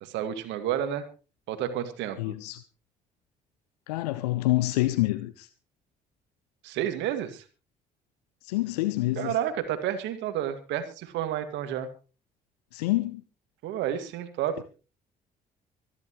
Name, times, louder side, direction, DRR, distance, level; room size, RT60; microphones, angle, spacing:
voice 1, 0.0-1.1 1.5-2.4 6.6-7.4 9.2-11.9 13.6-14.6, right 10 dB, 65° right, 2.1 m, -30 dB
voice 2, 2.2-2.6 3.9-5.5 8.4-9.3 12.7-13.2, left 18 dB, 75° left, 0.7 m, -27 dB
24.5 x 11.0 x 3.1 m
figure-of-eight pair, 45°, 20 cm